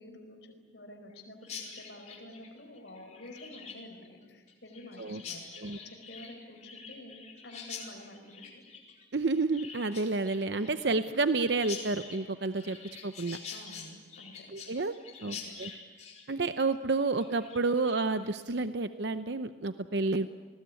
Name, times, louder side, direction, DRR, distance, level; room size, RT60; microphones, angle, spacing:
voice 1, 0.0-5.5 5.7-8.6 10.5-10.7 13.5-14.5 15.2-15.5, left 1 dB, 65° left, 4 dB, 4.9 m, -49 dB
Chirp tweet, 1.4-18.3, left 6 dB, 35° left, 4.5 m, -46 dB
voice 2, 9.1-12.8 13.0-13.4 14.5-14.9 15.2-15.7 16.3-20.3, right 3 dB, 65° right, 10 dB, 0.7 m, -30 dB
30.0 x 20.0 x 9.8 m, 1.4 s
head